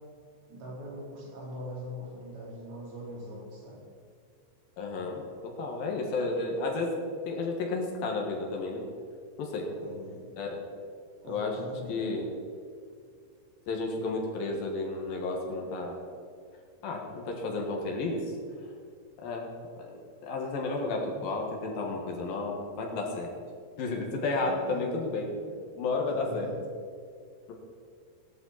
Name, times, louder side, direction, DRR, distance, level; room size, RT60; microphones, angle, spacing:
voice 1, 0.5-3.8 9.7-10.3 11.2-12.0 24.3-24.8 26.0-26.6, equal, 50° right, -6 dB, 5.7 m, -42 dB
voice 2, 4.8-7.0 7.3-8.9 9.4-9.7 10.4-10.5 11.2-11.6 11.9-12.3 13.7-16.0 16.8-18.3 19.2-19.5 19.8-23.3 23.8-26.5, left 3 dB, 60° left, 0 dB, 2.7 m, -32 dB
18.0 x 11.5 x 4.2 m, 2.2 s
omnidirectional pair, 6.0 m